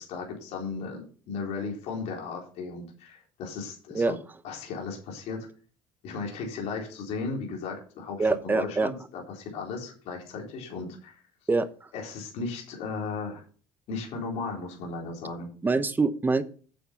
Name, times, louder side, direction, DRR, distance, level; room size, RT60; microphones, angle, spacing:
voice 1, 0.0-4.2 4.4-5.4 6.0-11.2 11.9-13.4 13.9-15.5, left 4 dB, 65° left, 0 dB, 3.8 m, -36 dB
voice 2, 8.2-8.9 11.5-11.7 15.6-16.4, right 3 dB, 15° right, 12 dB, 0.9 m, -24 dB
9.2 x 7.1 x 5.7 m, 0.40 s
cardioid pair, 125°, 12 cm